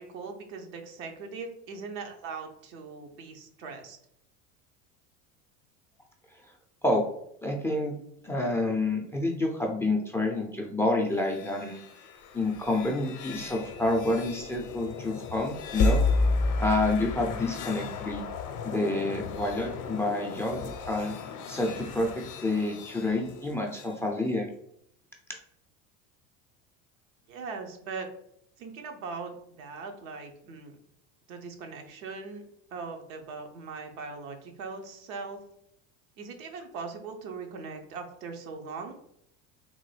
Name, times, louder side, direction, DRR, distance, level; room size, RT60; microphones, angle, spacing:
voice 1, 0.0-4.0 27.3-28.1 28.6-30.8 31.3-32.4 32.7-35.4 36.2-39.0, right 4 dB, 80° right, 3 dB, 0.8 m, -40 dB
voice 2, 7.4-8.0 8.2-11.8 12.3-16.0 16.6-18.2 18.6-21.2 21.5-24.5, left 2 dB, 5° left, 1 dB, 0.4 m, -28 dB
sound 1, 11.1-24.0, left 3 dB, 50° left, 0.6 m, -33 dB
3.7 x 2.1 x 3.2 m, 0.74 s
supercardioid pair, 95°, 40 cm